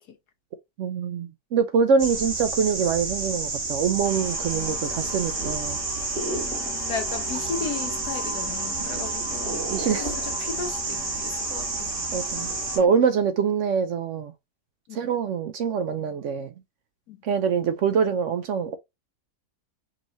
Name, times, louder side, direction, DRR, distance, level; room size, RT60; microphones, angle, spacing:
voice 1, 0.8-5.8 9.7-10.1 12.1-12.5 12.8-14.3 14.9-16.5 17.2-18.8, right 6 dB, 70° right, 0.8 m, -24 dB
sound 1, 2.0-12.8, right 3 dB, 40° right, 1.3 m, -30 dB
sound 2, 4.0-12.9, left 4 dB, 55° left, 1.5 m, -40 dB
voice 2, 4.5-5.3 6.2-9.6 10.0-11.9 14.9-15.0 17.1-17.2, left 5 dB, 85° left, 1.5 m, -36 dB
5.3 x 3.0 x 2.6 m
omnidirectional pair, 1.6 m